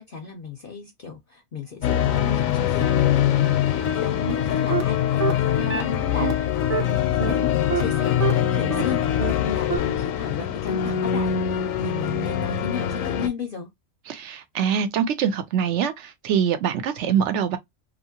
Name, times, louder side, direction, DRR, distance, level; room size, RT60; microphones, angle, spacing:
voice 1, 0.0-6.6 6.9-13.7, left 5 dB, 55° left, 0.6 m, -34 dB
sound 1, 1.8-13.3, left 10 dB, 80° left, 1.0 m, -23 dB
sound 2, 4.3-4.4 4.7-4.8 5.2-5.3 5.7-5.8 6.2-6.3 6.7-6.8 7.2-7.3 7.7-7.8 8.2-8.3 8.7-8.8 9.2-9.3 9.7-9.8, right 7 dB, 40° right, 0.6 m, -24 dB
voice 2, 14.1-17.6, right 8 dB, 65° right, 0.8 m, -24 dB
2.7 x 2.5 x 2.7 m
omnidirectional pair, 1.4 m